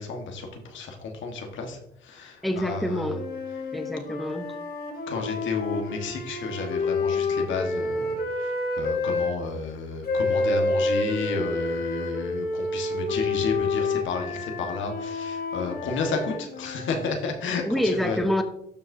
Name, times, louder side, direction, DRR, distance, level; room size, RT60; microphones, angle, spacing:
voice 1, 0.0-3.1 5.1-18.2, left 4 dB, 75° left, 3 dB, 1.5 m, -31 dB
voice 2, 2.4-3.2 3.7-4.5 17.6-18.4, left 1 dB, ahead, 6 dB, 0.8 m, -26 dB
sound 1, 3.1-9.3 10.0-17.1, left 3 dB, 50° left, 1.9 m, -29 dB
12.5 x 4.8 x 2.7 m, 0.79 s
cardioid pair, 90°, 20 cm